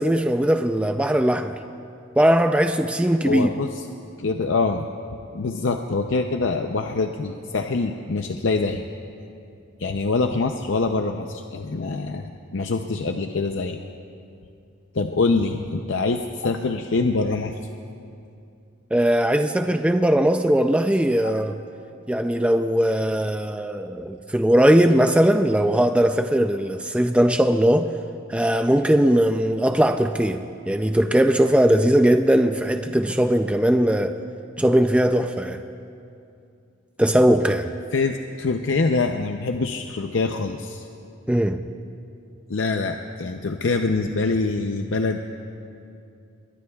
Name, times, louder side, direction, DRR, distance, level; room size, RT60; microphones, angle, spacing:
voice 1, 0.0-1.6 2.2-3.5 18.9-21.6 22.1-27.9 28.3-34.2 34.6-35.6 37.0-37.7 41.3-41.6, right 1 dB, 5° right, 0.3 m, -19 dB
voice 2, 3.2-3.8 4.2-4.8 5.3-8.8 9.8-13.8 14.9-17.6 21.2-21.3 37.9-40.9 42.5-45.2, left 3 dB, 65° left, 0.6 m, -24 dB
27.5 x 22.0 x 2.3 m
head